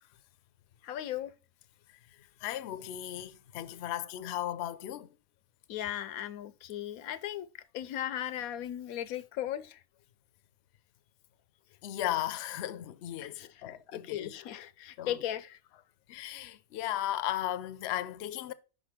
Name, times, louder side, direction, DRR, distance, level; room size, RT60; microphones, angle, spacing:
voice 1, 0.8-1.3 5.7-7.5 7.7-9.8 13.2-13.5 13.9-15.6, left 11 dB, 85° left, 1.1 m, -37 dB
voice 2, 2.4-5.1 11.8-14.4 15.0-15.2 16.1-18.5, left 12 dB, 60° left, 0.7 m, -36 dB
5.5 x 5.3 x 5.8 m
omnidirectional pair, 1.5 m